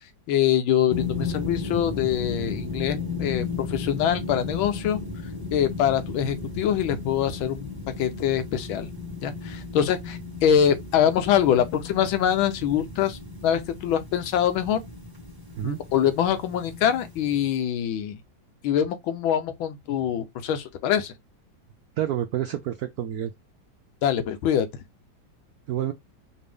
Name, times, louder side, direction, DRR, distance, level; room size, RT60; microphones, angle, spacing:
voice 1, 0.3-5.0 5.5-7.7 8.0-8.9 9.2-14.8 15.6-18.2 18.6-21.1 24.0-24.7, left 9 dB, 90° left, 1.6 m, -24 dB
sound 1, 0.9-17.4, left 4 dB, 15° right, 0.8 m, -35 dB
voice 2, 22.0-23.3 25.7-25.9, right 11 dB, 85° right, 0.8 m, -28 dB
5.1 x 2.7 x 3.4 m
omnidirectional pair, 2.1 m